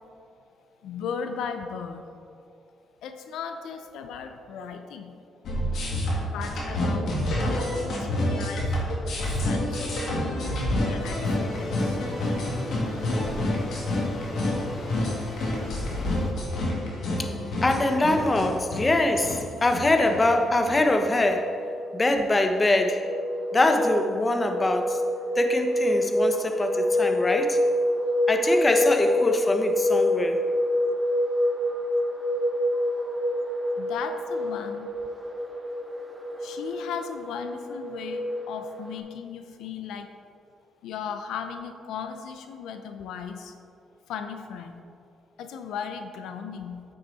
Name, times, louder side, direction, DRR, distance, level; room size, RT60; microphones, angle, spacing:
voice 1, 0.8-2.0 3.0-5.1 6.2-7.2 7.4-8.7 9.0-12.0 33.8-34.9 36.4-40.1 40.8-43.5 44.1-44.8 45.4-46.8, left 6 dB, 85° left, 7 dB, 0.5 m, -37 dB
sound 1, 5.4-20.8, left 1 dB, 70° left, 2.1 m, -28 dB
sound 2, 11.0-16.3, left 2 dB, 50° left, 1.3 m, -39 dB
voice 2, 17.6-23.2 23.5-25.0 25.3-27.6 28.3-30.4, left 2 dB, 25° left, 6 dB, 0.8 m, -23 dB
sound 3, 21.4-39.0, left 1 dB, 15° right, 1.0 m, -27 dB
8.7 x 6.3 x 4.1 m, 2.4 s
cardioid pair, 90°, 0 cm